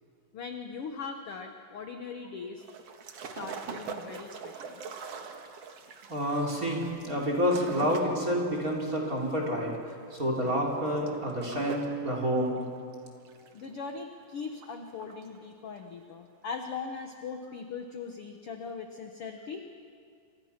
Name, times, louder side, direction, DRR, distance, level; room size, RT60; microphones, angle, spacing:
voice 1, 0.3-2.6 3.2-4.8 13.5-19.6, left 5 dB, 65° left, 5 dB, 1.4 m, -40 dB
sound 1, 2.6-12.0 12.3-14.1 14.5-15.4 15.7-15.8, right 6 dB, 55° right, 2.1 m, -43 dB
voice 2, 6.1-12.5, equal, 25° right, 0 dB, 4.1 m, -29 dB
28.0 x 26.5 x 6.0 m, 2.3 s
omnidirectional pair, 4.2 m